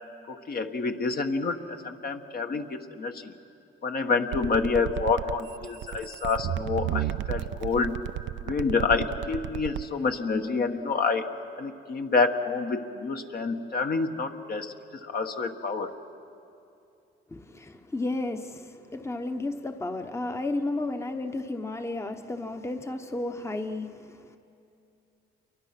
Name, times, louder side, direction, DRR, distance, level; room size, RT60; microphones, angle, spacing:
voice 1, 0.3-3.3 3.8-8.0 8.5-11.3 11.6-14.7 15.0-15.9, left 4 dB, 50° left, 5 dB, 1.3 m, -28 dB
sound 1, 4.3-9.8, right 13 dB, 75° right, 0.5 m, -33 dB
voice 2, 17.3-24.4, left 2 dB, 15° left, 7 dB, 1.0 m, -33 dB
28.5 x 23.0 x 5.9 m, 2.7 s
cardioid pair, 90°, 20 cm